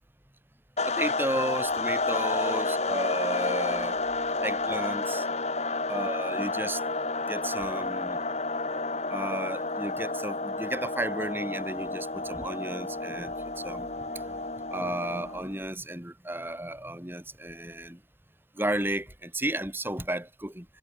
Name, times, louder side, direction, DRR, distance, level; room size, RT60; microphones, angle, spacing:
sound 1, 0.8-15.5, left 3 dB, 40° left, 7.2 m, -30 dB
voice 1, 0.8-4.0 4.4-5.3 5.9-6.8 7.3-8.2 9.1-14.4 14.7-18.0 18.5-20.7, right 1 dB, 10° right, 4.7 m, -33 dB
head